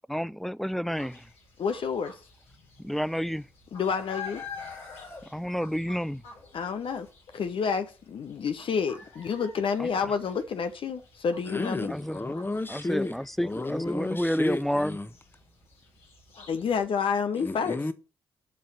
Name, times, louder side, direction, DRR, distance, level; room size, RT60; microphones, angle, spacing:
voice 1, 0.1-1.2 2.8-3.5 5.3-6.2 9.8-9.9 11.9-12.3 12.7-15.0, equal, ahead, 0.4 m, -30 dB
sound 1, 0.9-16.9, left 4 dB, 75° left, 3.9 m, -48 dB
voice 2, 1.6-2.2 3.7-4.4 6.5-7.1 7.3-11.9 16.5-17.8, left 6 dB, 55° left, 0.8 m, -29 dB
voice 3, 11.5-13.1 13.4-15.1 17.4-17.9, left 2 dB, 20° left, 1.2 m, -32 dB
7.6 x 5.7 x 7.0 m
hypercardioid pair, 45°, 11 cm